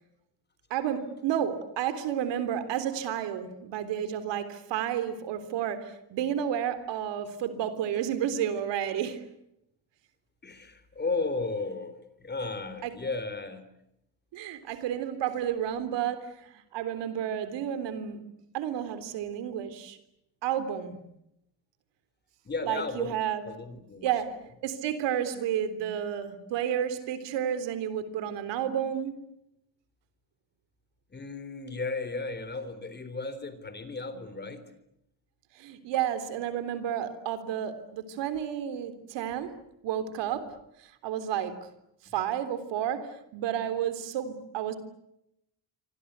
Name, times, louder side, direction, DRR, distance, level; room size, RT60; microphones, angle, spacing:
voice 1, 0.7-9.2 12.8-12.9 14.3-18.2 18.5-20.0 20.4-21.0 22.6-23.5 24.0-24.4 24.6-29.2 35.6-39.6 39.8-40.5 40.8-41.7 42.1-44.8, right 9 dB, 85° right, 3.6 m, -31 dB
voice 2, 10.4-13.6 22.4-23.2 23.4-24.1 31.1-34.7 42.1-42.2, left 3 dB, 25° left, 3.9 m, -34 dB
28.0 x 25.0 x 8.2 m
cardioid pair, 120°, 42 cm